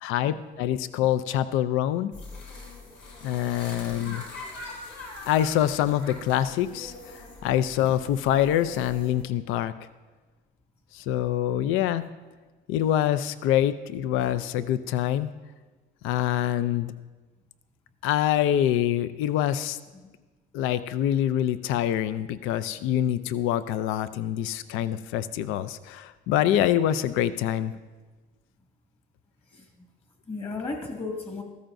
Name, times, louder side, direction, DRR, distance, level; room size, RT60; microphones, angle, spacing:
voice 1, 0.0-2.1 3.2-4.2 5.3-9.7 10.9-12.1 12.7-15.3 16.0-16.9 18.0-19.8 20.5-27.7, left 11 dB, 80° left, 13 dB, 0.5 m, -25 dB
sound 1, 2.1-9.2, left 2 dB, 60° left, 4.2 m, -43 dB
voice 2, 30.3-31.4, left 3 dB, 30° left, 1 dB, 1.9 m, -35 dB
14.0 x 13.5 x 2.6 m, 1.3 s
cardioid pair, 120°, 20 cm